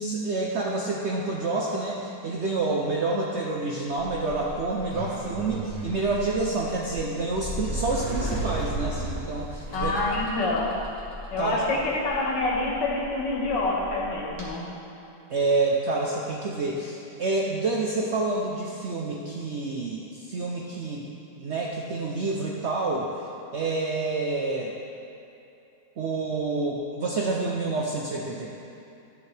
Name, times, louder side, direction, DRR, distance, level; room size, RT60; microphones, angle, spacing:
voice 1, 0.0-9.9 11.4-11.6 15.3-21.0 21.4-23.2 23.5-24.7 26.0-28.5, right 3 dB, 70° right, -2 dB, 0.6 m, -28 dB
Sliding door, 3.9-14.5, right 1 dB, 25° right, 1.5 m, -35 dB
voice 2, 9.7-10.7 11.3-14.7, left 2 dB, 90° left, -2 dB, 1.9 m, -27 dB
12.0 x 6.6 x 3.3 m, 2.7 s
omnidirectional pair, 1.8 m